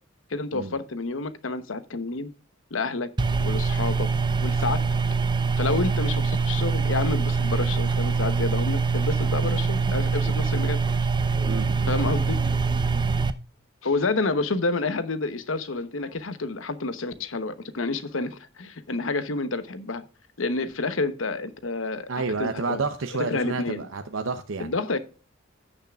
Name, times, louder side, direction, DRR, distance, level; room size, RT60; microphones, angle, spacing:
voice 1, 0.3-2.3 2.7-3.1 3.4-4.1 4.4-4.8 5.6-10.8 11.9-12.4 13.8-20.1 20.4-22.8 23.3-23.9 24.6-25.0, left 3 dB, 80° left, 1.0 m, -29 dB
sound 1, 3.2-13.3, right 4 dB, 25° right, 0.6 m, -24 dB
voice 2, 11.4-11.9 22.1-24.7, right 4 dB, 90° right, 0.8 m, -30 dB
16.0 x 6.6 x 2.4 m
head